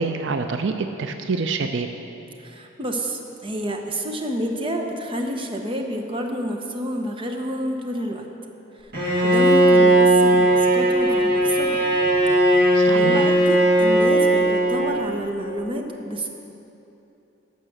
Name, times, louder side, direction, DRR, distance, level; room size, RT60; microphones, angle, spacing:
voice 1, 0.0-1.9 12.7-13.4, right 4 dB, 70° right, 7 dB, 0.5 m, -26 dB
voice 2, 2.4-8.2 9.2-11.8 12.5-16.3, equal, 30° right, 3 dB, 0.9 m, -29 dB
Bowed string instrument, 8.9-15.2, right 1 dB, 55° right, 1.9 m, -17 dB
12.0 x 5.9 x 7.8 m, 2.9 s
head